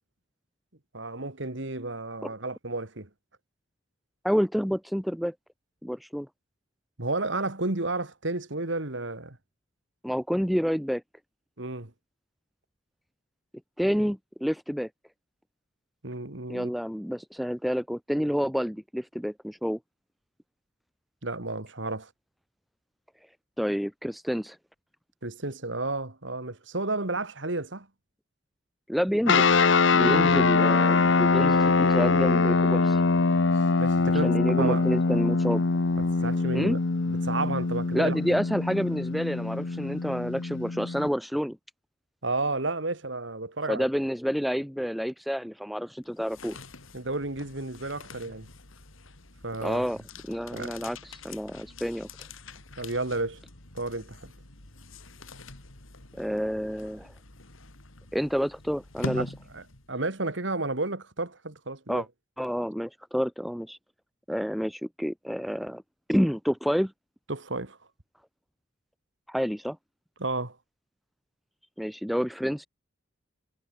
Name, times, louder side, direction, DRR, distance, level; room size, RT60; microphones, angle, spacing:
voice 1, 0.9-3.1 7.0-9.4 11.6-11.9 16.0-16.7 21.2-22.1 25.2-27.9 30.0-30.5 33.8-34.9 36.0-36.8 37.1-38.2 42.2-43.9 46.9-48.5 49.4-49.9 50.5-50.9 52.8-53.4 53.7-54.3 59.5-59.6 59.9-62.0 67.3-67.8 70.2-70.6, right 2 dB, 65° right, 2.5 m, -32 dB
voice 2, 4.2-5.3 5.8-6.3 10.0-11.0 13.8-14.9 16.5-19.8 23.6-24.6 28.9-29.5 29.9-33.0 34.2-35.6 36.5-36.8 37.9-41.6 43.7-46.6 49.6-50.0 50.3-52.1 56.1-57.1 58.1-59.3 61.9-62.1 62.4-63.8 64.3-65.8 66.1-66.9 69.3-69.8 71.8-72.7, equal, ahead, 0.5 m, -29 dB
sound 1, 29.3-41.1, left 3 dB, 65° left, 0.9 m, -23 dB
sound 2, 46.0-60.1, left 2 dB, 90° left, 3.4 m, -44 dB
head